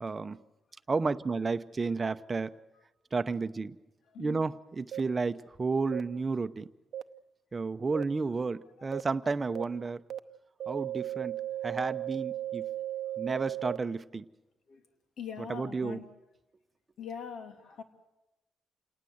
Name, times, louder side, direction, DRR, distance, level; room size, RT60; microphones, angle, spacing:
voice 1, 0.0-0.4 0.9-2.5 3.1-3.8 4.2-6.7 7.5-10.0 10.7-11.3 11.6-12.7 13.2-14.2 15.5-16.0, right 4 dB, 25° right, 0.8 m, -32 dB
voice 2, 4.1-4.5 8.8-9.0 14.7-14.8 15.2-16.0 17.0-17.8, left 7 dB, 70° left, 3.0 m, -42 dB
sound 1, 4.9-5.0 5.9-6.0 6.9-7.0 7.9-8.0 8.9-9.0 9.6-9.7 10.1-10.2 10.6-13.8, right 12 dB, 65° right, 0.8 m, -35 dB
28.0 x 19.0 x 7.9 m
cardioid pair, 145°, 0 cm